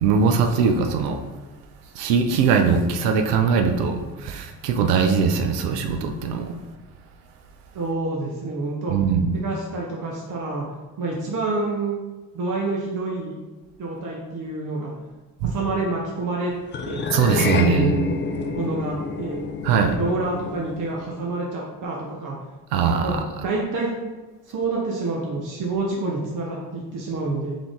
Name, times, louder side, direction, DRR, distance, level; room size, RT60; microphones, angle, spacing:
voice 1, 0.0-1.2 2.0-6.6 8.9-9.3 15.4-15.5 17.1-17.9 19.6-20.0 22.7-23.2, right 6 dB, 75° right, 5 dB, 0.6 m, -21 dB
voice 2, 7.7-8.9 9.3-10.6 11.0-12.0 12.3-13.4 13.8-14.9 15.4-16.5 16.9-17.0 17.5-18.0 18.5-19.4 19.8-22.4 23.0-23.1 23.4-23.9 24.5-27.6, right 3 dB, 40° right, -3 dB, 0.9 m, -27 dB
sound 1, 16.7-21.3, left 4 dB, 25° left, 0.4 m, -28 dB
3.6 x 3.4 x 3.5 m, 1.2 s
figure-of-eight pair, 40°, 46 cm